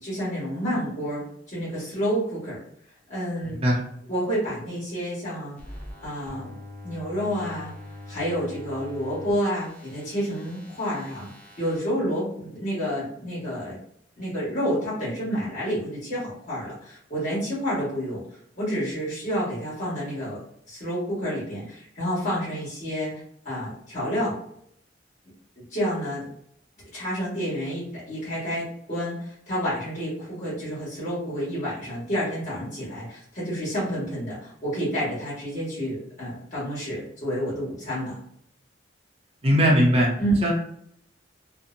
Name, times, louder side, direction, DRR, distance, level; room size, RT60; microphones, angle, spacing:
voice 1, 0.0-2.6 3.1-3.6 4.1-5.6 6.0-6.5 6.8-7.8 8.1-11.3 11.6-13.8 14.2-18.2 18.5-20.4 20.7-23.1 23.4-24.3 25.6-26.3 26.9-38.2 40.2-40.4, equal, 40° left, -9 dB, 1.3 m, -29 dB
voice 2, 3.5-3.8 39.4-40.1 40.4-40.5, equal, 35° right, -2 dB, 0.5 m, -19 dB
sound 1, 5.6-11.8, left 1 dB, 10° left, 0.6 m, -43 dB
2.7 x 2.0 x 2.5 m, 0.69 s
head